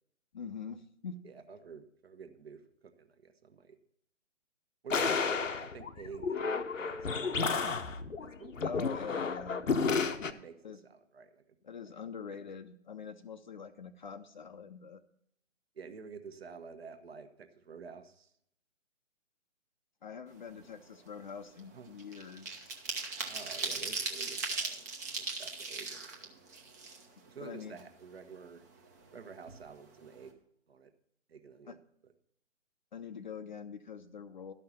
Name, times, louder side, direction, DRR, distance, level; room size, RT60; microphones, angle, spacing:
voice 1, 0.3-1.2 8.6-9.6 10.6-10.8 11.6-15.0 20.0-22.8 27.4-27.8 31.7-31.8 32.9-34.5, left 6 dB, 40° left, 10 dB, 0.6 m, -44 dB
voice 2, 1.2-3.8 4.8-7.4 8.2-9.2 10.3-11.5 15.7-18.3 21.7-21.9 23.2-24.8 25.2-26.4 27.3-28.6 29.1-30.4 30.7-30.9 31.3-31.8, right 5 dB, 50° right, 8 dB, 1.2 m, -49 dB
sound 1, 4.9-10.3, left 5 dB, 80° left, 1.0 m, -32 dB
sound 2, 20.4-20.6 21.0-27.4 27.8-27.9 28.2-29.2 29.5-29.6 29.9-30.2, right 4 dB, 15° right, 0.7 m, -38 dB
12.5 x 5.8 x 7.1 m, 0.71 s
figure-of-eight pair, 145°, 38 cm